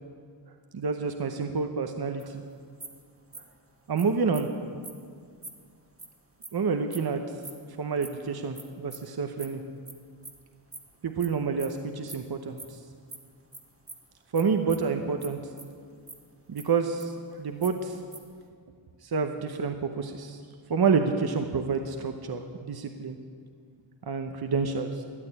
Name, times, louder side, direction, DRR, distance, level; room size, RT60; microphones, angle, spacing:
voice 1, 0.7-2.4 3.9-4.5 6.5-7.2 7.8-9.6 11.0-12.8 14.3-15.4 16.5-18.0 19.0-20.4 20.7-23.2 24.1-25.0, right 5 dB, 50° right, 6 dB, 0.9 m, -28 dB
sound 1, 2.2-2.3 2.8-3.0 3.3-3.6 4.0-4.1 4.3-4.4 4.8-4.9 5.4-5.5 6.0-6.1 6.4-6.5 6.9-7.0 7.4-7.5 8.0-8.1 8.5-8.6 8.9-9.0 9.4-9.5 9.9-10.0 10.2-10.4 10.7-11.3 11.6-11.7 12.1-12.2 12.5-12.7 13.1-13.2 13.5-13.6 13.9-14.0 14.3-14.4 14.7-14.9 15.2-15.3 15.6-16.2 16.6-17.3 17.6-18.4, right 2 dB, 25° right, 1.5 m, -42 dB
13.0 x 9.0 x 9.9 m, 2.1 s
wide cardioid pair, 115°, 49 cm